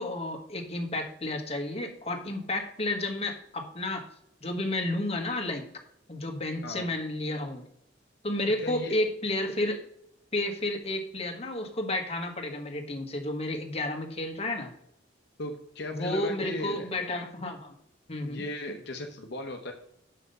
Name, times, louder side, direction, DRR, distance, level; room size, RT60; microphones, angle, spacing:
voice 1, 0.0-4.0 4.4-5.7 6.1-7.6 8.2-9.8 10.3-14.7 15.9-17.7 18.1-18.4, left 1 dB, 35° left, 4 dB, 1.4 m, -31 dB
voice 2, 8.6-9.0 15.4-16.9 18.2-19.7, left 1 dB, 65° left, 4 dB, 1.0 m, -36 dB
6.7 x 6.0 x 6.7 m, 0.76 s
head